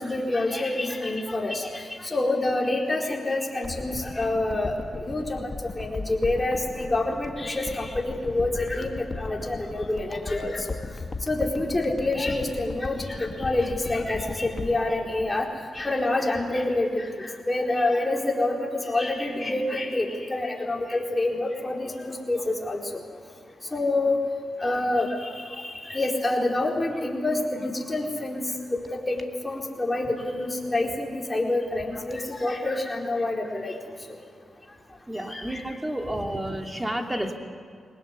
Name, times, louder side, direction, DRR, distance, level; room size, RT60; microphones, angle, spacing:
voice 1, 0.0-4.7 5.0-10.7 11.3-15.5 15.7-23.0 23.7-24.2 24.6-28.4 28.7-33.7 35.1-35.6 37.1-37.2, left 2 dB, 20° left, 0 dB, 4.4 m, -27 dB
sound 1, 3.6-16.1 16.4-16.5, left 3 dB, 35° left, 1.7 m, -37 dB
voice 2, 35.1-37.4, right 1 dB, 15° right, 3 dB, 2.7 m, -30 dB
22.5 x 19.5 x 8.3 m, 2.2 s
cardioid pair, 75°, 0 cm